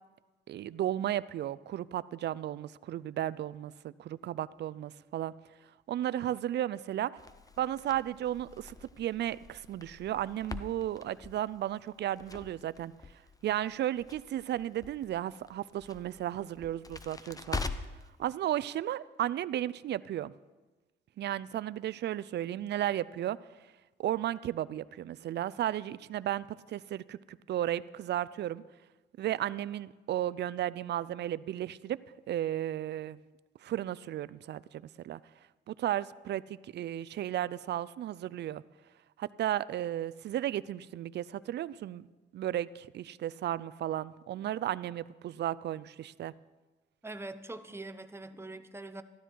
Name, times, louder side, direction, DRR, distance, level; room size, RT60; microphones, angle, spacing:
voice 1, 0.5-5.3 5.9-7.1 7.6-12.9 13.4-17.6 18.2-20.3 21.2-23.4 24.0-28.6 29.2-32.0 32.3-33.2 33.6-35.2 35.7-38.6 39.2-42.1 42.3-46.3, right 12 dB, 60° right, 18 dB, 0.5 m, -34 dB
Crackle, 7.2-18.1, left 3 dB, 20° left, 0.7 m, -44 dB
voice 2, 47.0-49.0, right 2 dB, 10° right, 10 dB, 0.8 m, -43 dB
14.0 x 12.5 x 4.6 m, 1.2 s
cardioid pair, 90°, 20 cm